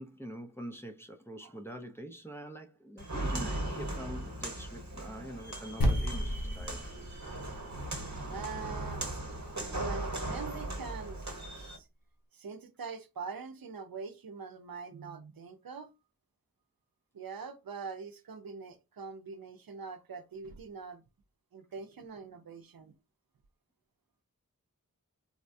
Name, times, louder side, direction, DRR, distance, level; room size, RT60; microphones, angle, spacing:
voice 1, 0.0-6.8, equal, 5° left, 0.5 m, -44 dB
Walk footsteps, 3.0-11.8, right 1 dB, 55° right, 1.1 m, -38 dB
sound 1, 5.8-10.3, equal, 75° left, 1.1 m, -35 dB
voice 2, 8.3-9.2 9.8-11.9 12.3-15.9 17.1-21.0 21.5-22.9, right 5 dB, 90° right, 0.5 m, -43 dB
4.1 x 2.2 x 2.6 m
wide cardioid pair, 40°, 34 cm